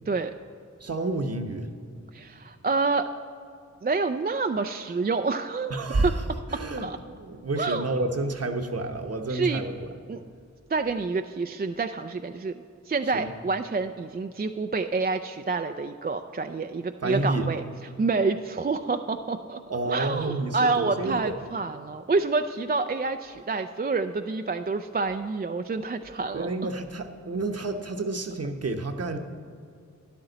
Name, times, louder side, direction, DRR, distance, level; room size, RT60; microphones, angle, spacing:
voice 1, 0.8-1.7 5.7-6.2 6.5-9.9 13.1-13.3 17.0-17.5 19.7-21.3 26.3-29.2, right 2 dB, 55° right, 5 dB, 1.0 m, -29 dB
voice 2, 2.1-3.1 3.8-6.1 6.8-7.0 7.6-7.9 9.3-9.6 10.1-10.2 10.7-17.6 18.0-19.6 19.9-26.5, right 4 dB, 30° right, 7 dB, 0.4 m, -28 dB
13.0 x 10.5 x 4.0 m, 2.4 s
wide cardioid pair, 60°, 30 cm